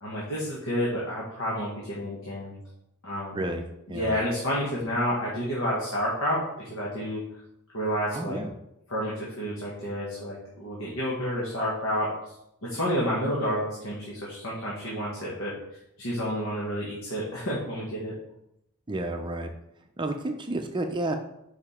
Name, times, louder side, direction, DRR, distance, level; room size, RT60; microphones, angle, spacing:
voice 1, 0.0-2.5 3.0-3.4 3.9-7.2 7.7-8.4 8.9-12.1 12.6-15.5 16.0-18.1, equal, 70° left, -6 dB, 1.7 m, -30 dB
voice 2, 3.3-4.1 8.1-8.5 18.9-19.5 20.0-21.2, right 2 dB, 20° right, 5 dB, 0.5 m, -31 dB
6.9 x 4.9 x 4.3 m, 0.81 s
head